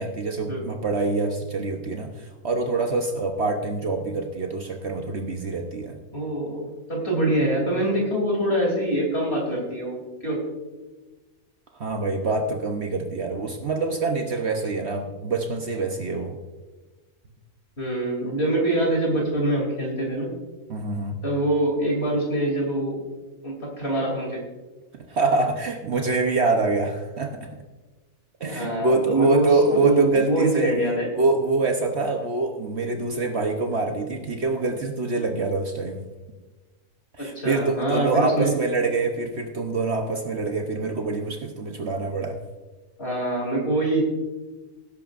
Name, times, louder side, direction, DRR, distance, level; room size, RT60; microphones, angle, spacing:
voice 1, 0.0-6.0 11.7-16.4 20.7-21.2 24.9-27.5 28.4-30.8 31.2-36.0 37.2-42.4, right 3 dB, 55° right, 3 dB, 1.1 m, -25 dB
voice 2, 6.1-10.4 17.8-20.3 21.2-23.0 23.4-24.4 28.4-31.1 37.2-38.5 43.0-44.0, right 1 dB, 45° left, -2 dB, 3.3 m, -24 dB
18.5 x 10.5 x 2.5 m, 1.2 s
omnidirectional pair, 1.4 m